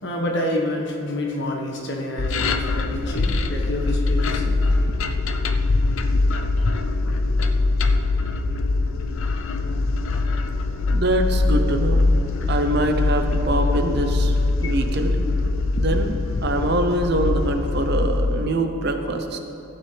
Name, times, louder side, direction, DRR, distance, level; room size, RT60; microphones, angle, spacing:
voice 1, 0.0-4.6, left 1 dB, 55° left, 0 dB, 1.5 m, -28 dB
sound 1, 2.2-18.5, left 3 dB, 80° left, 0.6 m, -22 dB
voice 2, 10.9-12.0 12.5-15.2 15.8-16.2 16.4-19.4, right 1 dB, 50° right, 5 dB, 0.8 m, -24 dB
15.0 x 8.7 x 3.4 m, 3.0 s
head